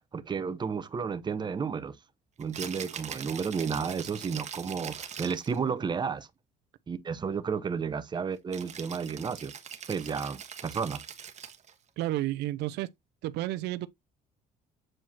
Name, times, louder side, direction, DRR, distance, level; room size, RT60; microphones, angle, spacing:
voice 1, 0.1-1.9 2.4-6.3 6.9-9.5 9.9-11.0, right 6 dB, 25° right, 0.8 m, -32 dB
Rattle (instrument), 2.4-5.6 8.5-11.7, right 8 dB, 45° right, 1.2 m, -42 dB
voice 2, 12.0-12.9 13.2-13.9, right 15 dB, 85° right, 0.5 m, -31 dB
7.6 x 4.6 x 2.8 m
cardioid pair, 110°, 17 cm